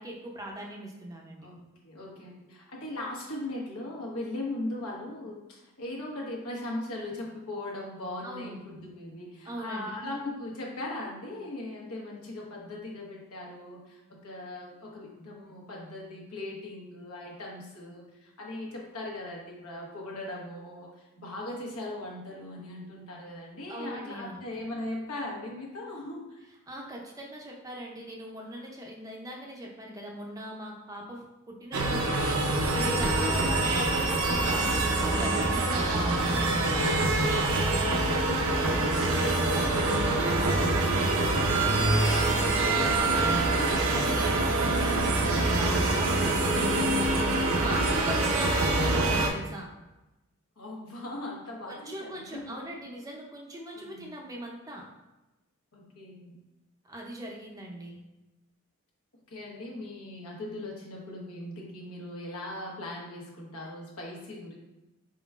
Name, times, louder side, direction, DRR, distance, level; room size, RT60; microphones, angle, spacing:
voice 1, 0.0-1.5 8.2-8.6 9.5-9.9 23.7-24.4 26.7-38.2 38.5-49.7 51.7-54.8 56.8-58.0, equal, 15° right, -1 dB, 0.5 m, -40 dB
voice 2, 1.8-26.5 50.6-52.6 53.7-54.1 55.7-56.4 59.3-64.5, left 1 dB, 85° left, -3 dB, 1.0 m, -39 dB
sound 1, 31.7-49.3, right 2 dB, 70° right, 0.5 m, -25 dB
4.5 x 3.7 x 2.4 m, 1.0 s
head